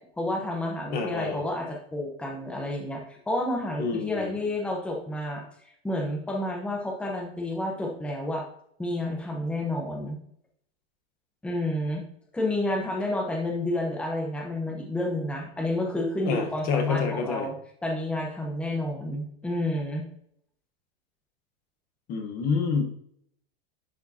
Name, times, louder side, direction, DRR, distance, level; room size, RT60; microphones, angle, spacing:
voice 1, 0.2-5.4 5.8-8.4 8.8-10.2 11.4-12.0 12.3-17.5 17.8-20.0, left 1 dB, 5° left, 0 dB, 1.0 m, -30 dB
voice 2, 0.9-1.4 3.8-4.3 16.2-17.5 22.1-22.8, left 5 dB, 30° left, 5 dB, 1.2 m, -28 dB
10.5 x 5.0 x 2.8 m, 0.67 s
supercardioid pair, 160°, 30 cm